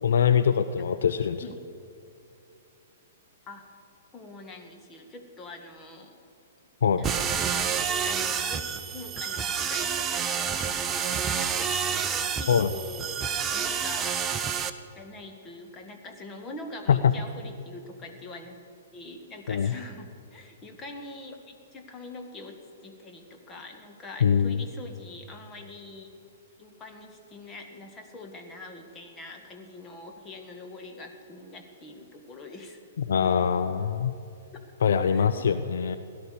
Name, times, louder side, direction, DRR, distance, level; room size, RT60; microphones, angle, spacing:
voice 1, 0.0-1.4 6.8-7.1 12.5-12.7 16.9-17.1 19.5-19.7 24.2-24.6 33.0-34.1 34.8-36.0, left 7 dB, 60° left, 11 dB, 0.6 m, -23 dB
voice 2, 4.1-6.2 7.0-14.2 14.9-18.6 18.9-26.1 26.6-32.8 33.2-33.8 34.5-34.6 35.1-35.3, left 2 dB, 20° left, 4 dB, 1.9 m, -44 dB
sound 1, 7.0-14.7, right 7 dB, 20° right, 0.8 m, -29 dB
16.5 x 11.5 x 6.9 m, 2.7 s
figure-of-eight pair, 115°, 0 cm